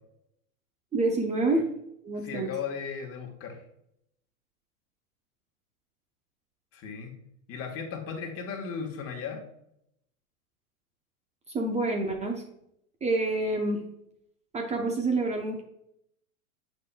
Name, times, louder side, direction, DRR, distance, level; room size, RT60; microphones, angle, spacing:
voice 1, 0.9-1.7 2.0-2.5 11.5-12.4 13.0-13.8 14.5-15.6, right 2 dB, 15° right, 3 dB, 0.7 m, -27 dB
voice 2, 2.2-3.6 6.7-7.1 7.5-9.4, left 6 dB, 30° left, 2 dB, 1.4 m, -36 dB
7.5 x 5.8 x 2.2 m, 0.76 s
hypercardioid pair, 105°, 43 cm